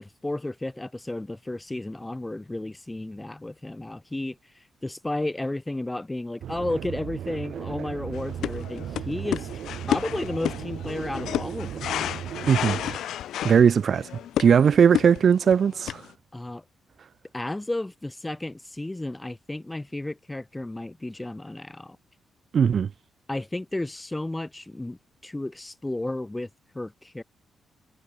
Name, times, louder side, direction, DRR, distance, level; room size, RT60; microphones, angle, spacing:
voice 1, 0.0-4.4 4.8-9.5 9.9-12.1 16.3-16.6 17.3-22.0 23.3-26.5 26.7-27.2, left 2 dB, 10° left, 4.6 m, -33 dB
sound 1, 6.4-13.0, right 10 dB, 65° right, 2.2 m, -36 dB
sound 2, 8.1-16.1, left 11 dB, 85° left, 2.9 m, -32 dB
voice 2, 12.5-13.1 13.4-14.1 14.4-16.0 22.5-22.9, right 7 dB, 45° right, 0.8 m, -19 dB
wide cardioid pair, 165°, 0 cm